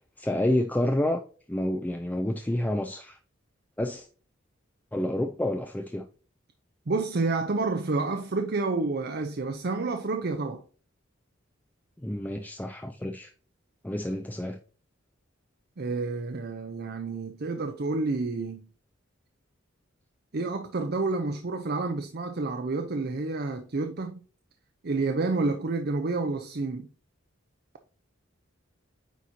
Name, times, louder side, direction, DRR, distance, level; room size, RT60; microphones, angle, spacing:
voice 1, 0.2-1.2 1.5-3.2 3.8-4.1 4.9-6.1 12.0-13.3 13.8-14.6, left 1 dB, 10° left, 0.5 m, -29 dB
voice 2, 6.9-10.6 15.8-18.7 20.3-24.2 24.8-26.9, right 3 dB, 50° right, 0.7 m, -29 dB
9.2 x 4.2 x 2.8 m
head